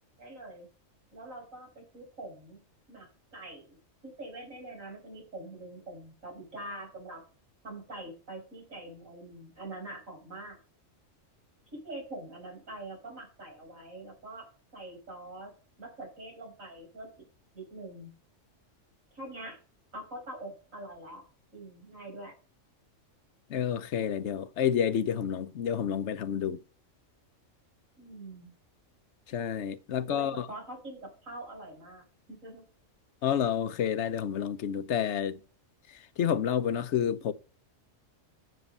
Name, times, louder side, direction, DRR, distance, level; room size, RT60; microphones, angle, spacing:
voice 1, 0.2-0.7 1.1-2.6 2.9-3.7 4.0-7.2 7.6-10.6 11.7-14.5 14.7-15.5 15.8-17.2 17.5-18.1 19.1-19.6 19.9-21.2 21.5-22.3 28.0-28.5 30.1-32.6, right 1 dB, 80° right, 5.9 m, -44 dB
voice 2, 23.5-26.6 29.3-30.5 33.2-35.4 35.9-37.3, left 9 dB, 65° left, 1.0 m, -29 dB
9.3 x 6.7 x 5.4 m
omnidirectional pair, 1.3 m